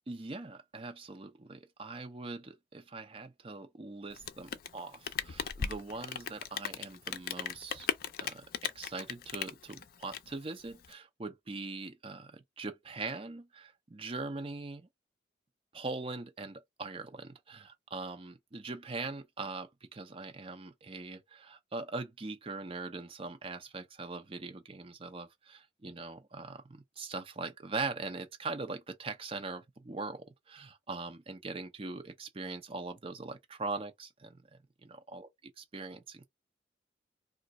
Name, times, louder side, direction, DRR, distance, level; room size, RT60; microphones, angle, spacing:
voice 1, 0.1-7.9 8.2-14.9 15.7-35.3 35.7-36.3, right 3 dB, 30° right, 0.6 m, -41 dB
Rain, 4.1-10.9, left 7 dB, 55° left, 0.4 m, -38 dB
2.5 x 2.4 x 4.0 m
head